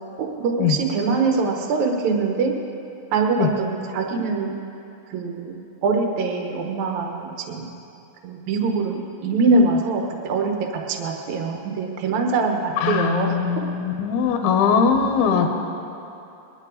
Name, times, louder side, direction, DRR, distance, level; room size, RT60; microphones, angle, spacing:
voice 1, 0.2-2.5 3.1-4.5 5.1-7.7 8.2-13.6, right 3 dB, 65° right, 2 dB, 1.9 m, -23 dB
voice 2, 12.8-15.5, left 6 dB, 75° left, 4 dB, 2.7 m, -20 dB
21.5 x 11.5 x 4.0 m, 2.8 s
omnidirectional pair, 4.8 m